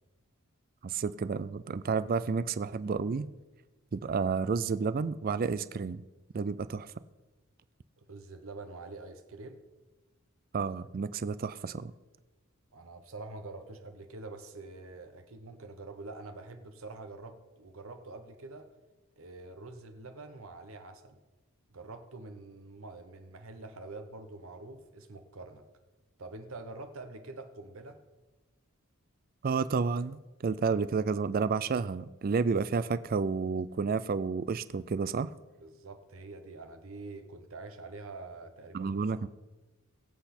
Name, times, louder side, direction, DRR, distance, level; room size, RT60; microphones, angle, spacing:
voice 1, 0.8-3.3 3.9-6.0 6.3-6.9 10.5-11.9 29.4-35.3 38.7-39.3, right 5 dB, 45° right, 16 dB, 0.4 m, -31 dB
voice 2, 8.0-9.6 12.7-18.7 19.2-21.2 21.7-25.7 26.2-28.0 35.6-39.3, right 3 dB, 70° right, 8 dB, 1.0 m, -46 dB
21.5 x 8.0 x 4.3 m, 1.2 s
head